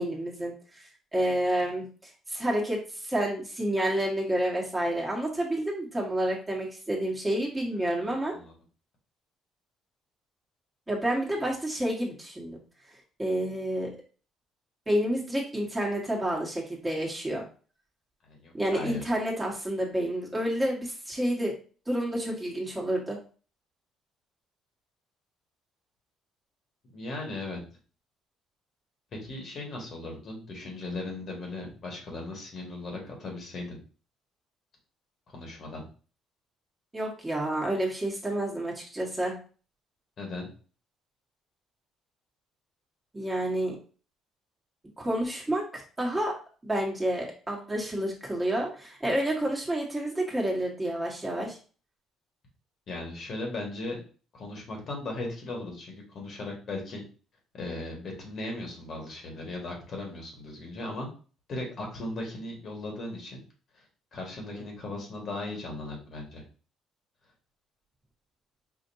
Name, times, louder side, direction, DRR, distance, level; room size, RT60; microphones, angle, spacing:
voice 1, 0.0-8.3 10.9-12.6 13.2-13.9 14.9-17.4 18.5-21.5 21.9-23.2 36.9-39.3 43.1-43.7 45.0-46.3 46.6-51.6, right 1 dB, 15° right, -2 dB, 1.4 m, -29 dB
voice 2, 7.8-8.5 18.2-19.0 26.9-27.6 29.1-33.7 35.3-35.9 40.2-40.5 52.9-54.0 54.3-57.0 57.5-61.1 61.5-63.4 64.1-66.4, left 2 dB, 55° left, 0 dB, 1.6 m, -37 dB
5.0 x 2.6 x 2.7 m, 0.38 s
cardioid pair, 90°, 0 cm